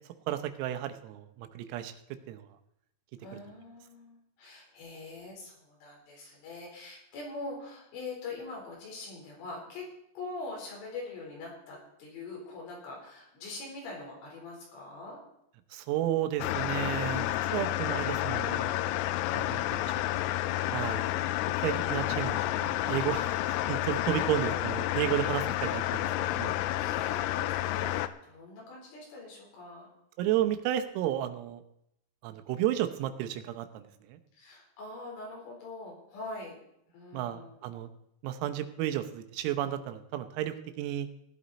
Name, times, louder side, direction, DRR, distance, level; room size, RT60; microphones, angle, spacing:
voice 1, 0.3-1.9 2.3-2.5 15.7-18.7 19.3-20.1 20.7-21.1 21.6-26.6 30.2-31.6 32.2-34.2 37.1-37.9 38.2-41.1, right 12 dB, 90° right, 8 dB, 3.7 m, -33 dB
voice 2, 3.2-9.9 10.1-15.2 24.2-24.4 26.2-29.9 34.3-36.5 36.9-37.5, left 3 dB, 70° left, -2 dB, 6.6 m, -43 dB
sound 1, 16.4-28.1, left 15 dB, 90° left, 3.3 m, -30 dB
17.0 x 11.5 x 4.2 m, 0.78 s
omnidirectional pair, 5.9 m